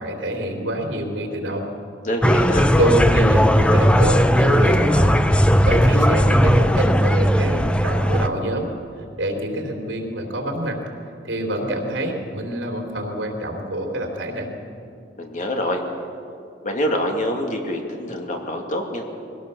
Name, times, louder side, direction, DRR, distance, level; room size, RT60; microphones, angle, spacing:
voice 1, 0.0-1.6 2.8-5.1 5.7-8.7 9.2-10.8 11.2-14.5, right 1 dB, 80° right, 2 dB, 3.6 m, -26 dB
voice 2, 2.0-2.7 15.2-15.8 16.6-19.0, equal, 45° left, 2 dB, 2.4 m, -25 dB
sound 1, 2.2-8.3, equal, 5° left, 0.6 m, -17 dB
22.5 x 17.5 x 7.0 m, 2.6 s
head